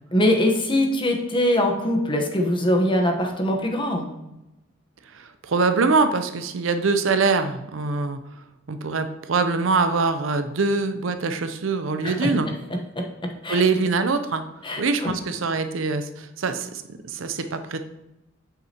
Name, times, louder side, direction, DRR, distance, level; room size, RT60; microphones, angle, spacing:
voice 1, 0.1-4.1 12.0-12.3 12.9-13.1 13.4-13.6 14.6-15.1, left 1 dB, 25° left, 2 dB, 1.0 m, -22 dB
voice 2, 5.1-8.2 8.7-12.5 13.5-14.4 14.8-17.8, right 4 dB, 70° right, 9 dB, 0.6 m, -23 dB
8.3 x 6.4 x 2.9 m, 0.95 s
head